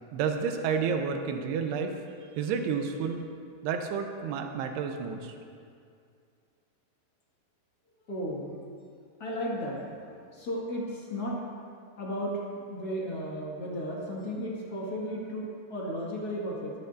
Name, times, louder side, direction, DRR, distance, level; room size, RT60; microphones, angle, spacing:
voice 1, 0.1-1.9 2.4-3.3 3.6-5.3, right 6 dB, 80° right, 4 dB, 2.8 m, -30 dB
voice 2, 8.1-8.5 9.2-9.8 10.3-11.5 12.0-16.7, equal, 40° left, -5 dB, 1.4 m, -34 dB
24.0 x 10.0 x 2.7 m, 2.3 s
omnidirectional pair, 5.0 m